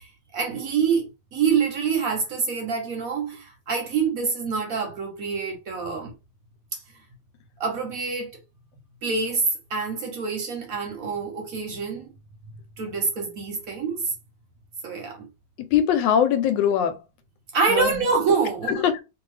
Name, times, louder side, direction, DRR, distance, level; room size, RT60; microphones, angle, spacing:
voice 1, 0.0-6.1 7.6-8.3 9.0-12.1 12.8-14.1 14.8-15.3 17.5-18.9, right 5 dB, 65° right, 0.9 m, -26 dB
voice 2, 15.6-17.0 17.7-18.1 18.7-19.0, left 9 dB, 90° left, 1.3 m, -22 dB
2.8 x 2.3 x 3.1 m
omnidirectional pair, 1.9 m